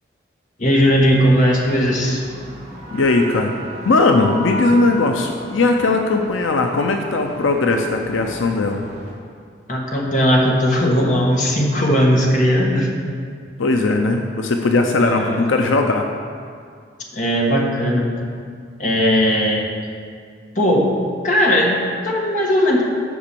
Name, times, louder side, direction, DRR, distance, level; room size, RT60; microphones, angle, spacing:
voice 1, 0.6-2.2 9.7-12.9 15.0-15.5 17.1-18.1 18.8-19.7 20.5-20.9 21.2-22.8, equal, 40° left, -2 dB, 1.4 m, -17 dB
sound 1, 1.0-9.1, right 1 dB, 25° right, 2.6 m, -35 dB
voice 2, 2.9-3.5 3.8-8.9 13.6-16.1, left 3 dB, 85° left, 3 dB, 0.6 m, -18 dB
8.5 x 6.0 x 6.9 m, 2.2 s
head